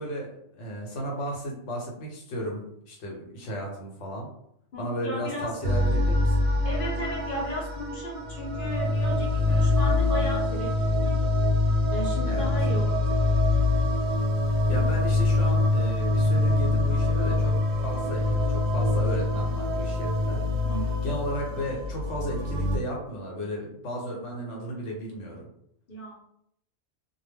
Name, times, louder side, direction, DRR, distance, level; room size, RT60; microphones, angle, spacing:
voice 1, 0.0-4.3 4.8-6.5 12.3-12.5 14.4-20.4 21.0-25.5, equal, 80° left, -1 dB, 1.0 m, -34 dB
voice 2, 4.7-5.5 6.6-11.3 11.9-13.0 20.6-21.0 25.9-26.1, left 1 dB, 55° left, -2 dB, 0.8 m, -35 dB
sound 1, 5.6-22.8, left 2 dB, 70° right, 0.8 m, -24 dB
2.2 x 2.0 x 3.3 m, 0.72 s
omnidirectional pair, 1.2 m